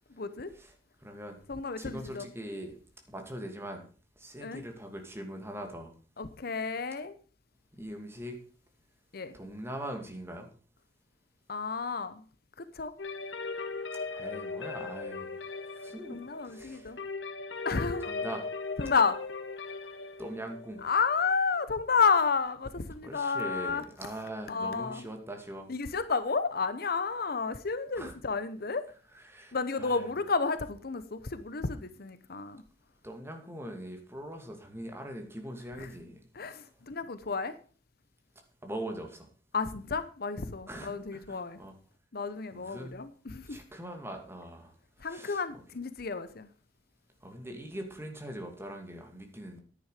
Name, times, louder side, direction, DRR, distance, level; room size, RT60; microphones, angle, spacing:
voice 1, 0.1-0.5 1.5-2.3 4.4-4.6 6.2-7.1 9.1-9.4 11.5-12.2 12.6-12.9 16.1-17.0 17.6-18.2 18.8-19.2 20.8-23.8 24.5-25.1 25.7-28.9 29.5-32.6 35.8-35.9 36.3-37.5 39.5-41.6 42.1-43.6 45.0-46.5, left 5 dB, 55° left, 0.9 m, -31 dB
voice 2, 1.0-1.4 1.8-2.8 3.1-3.9 4.2-5.9 7.7-8.4 9.3-10.5 14.1-15.4 15.7-16.9 18.1-18.4 20.2-20.8 23.0-25.7 28.0-28.1 29.1-30.0 33.0-36.3 38.6-39.3 40.7-41.7 42.5-43.0 43.5-44.7 45.0-45.4 47.2-49.6, right 1 dB, 15° right, 2.6 m, -42 dB
sound 1, 13.0-22.7, left 4 dB, 85° left, 1.4 m, -39 dB
10.5 x 10.0 x 5.0 m
head